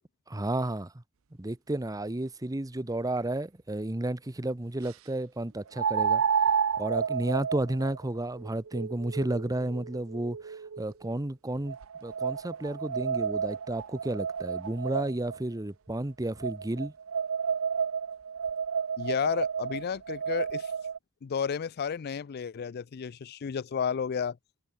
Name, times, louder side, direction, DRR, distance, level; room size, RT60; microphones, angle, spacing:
voice 1, 0.3-0.9 1.4-6.2 6.8-16.9, right 1 dB, 15° right, 0.8 m, -32 dB
sound 1, 3.2-3.3 5.8-10.9 11.7-15.4 16.4-21.0, right 6 dB, 80° right, 0.6 m, -31 dB
voice 2, 19.0-20.7 21.2-24.4, left 6 dB, 50° left, 0.4 m, -32 dB
head